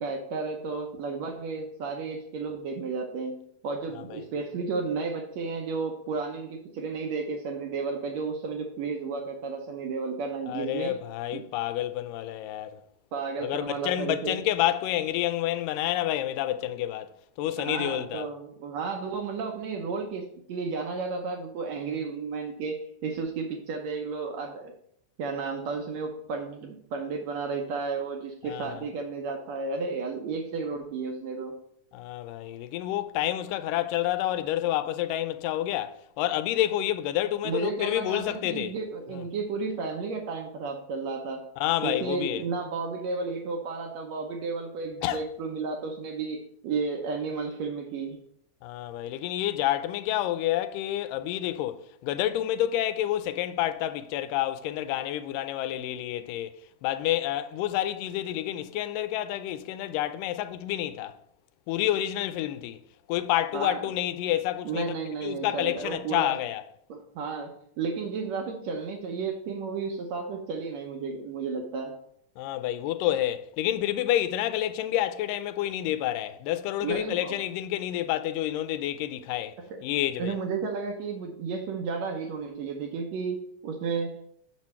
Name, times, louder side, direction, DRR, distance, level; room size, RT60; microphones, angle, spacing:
voice 1, 0.0-10.9 11.3-11.5 13.1-14.4 17.6-24.7 25.2-31.5 37.4-41.4 41.8-48.2 63.5-63.8 64.6-66.4 66.9-71.9 76.8-77.4 80.2-84.3, right 4 dB, 70° right, 1.7 m, -33 dB
voice 2, 10.5-12.8 13.4-17.1 17.4-18.3 28.4-28.8 31.9-38.8 39.1-39.2 41.6-42.4 45.0-45.2 48.6-56.6 56.8-61.1 61.7-62.8 63.1-64.9 65.2-66.6 72.4-79.5 79.8-80.3, left 13 dB, 90° left, 2.2 m, -29 dB
6.3 x 6.2 x 4.2 m
omnidirectional pair, 3.8 m